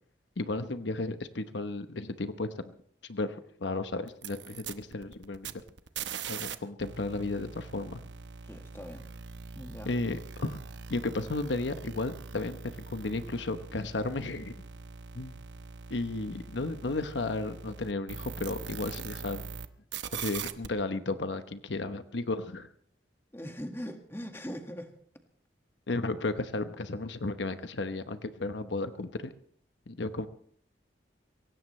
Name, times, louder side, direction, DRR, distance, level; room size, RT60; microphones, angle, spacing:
voice 1, 0.4-2.7 3.0-5.5 6.3-8.1 9.9-10.6 10.9-14.6 15.1-15.4 15.9-19.4 20.1-22.7 25.9-29.3 29.9-30.3, left 2 dB, 85° left, 10 dB, 1.0 m, -34 dB
sound 1, 4.1-6.5 6.8-19.7 19.9-20.7, right 6 dB, 85° right, 0.9 m, -42 dB
voice 2, 8.4-9.1 9.5-10.0 23.3-24.9, equal, 15° left, 5 dB, 1.7 m, -41 dB
23.5 x 17.5 x 3.2 m, 0.62 s
head